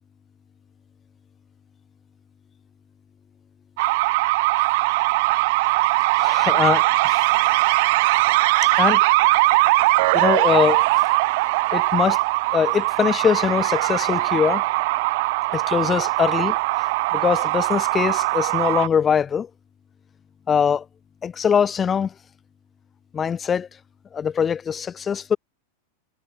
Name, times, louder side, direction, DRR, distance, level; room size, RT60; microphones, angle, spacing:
sound 1, 3.8-18.9, right 23 dB, 50° right, 5.0 m, -20 dB
voice 1, 6.2-7.3 8.8-9.0 10.1-10.8 11.7-12.2 12.5-14.6 15.5-16.6 17.1-19.5 20.5-20.8 21.2-22.1 23.1-23.7 24.1-25.4, left 7 dB, 20° left, 7.6 m, -22 dB
figure-of-eight pair, 90°, 0 cm